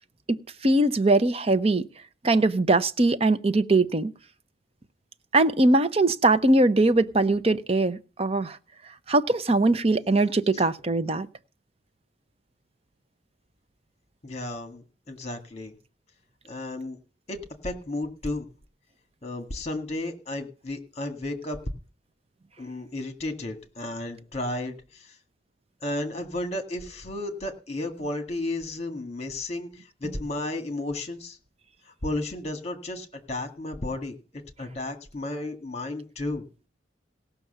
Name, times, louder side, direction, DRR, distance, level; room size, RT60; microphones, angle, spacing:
voice 1, 0.6-1.8 2.2-4.1 5.3-8.6 9.1-11.3, right 2 dB, 30° right, 0.7 m, -21 dB
voice 2, 14.2-15.7 16.4-17.0 17.3-18.5 19.2-21.6 22.6-25.2 25.8-31.4 31.9-36.5, left 2 dB, 35° left, 1.9 m, -33 dB
17.5 x 6.1 x 6.7 m
head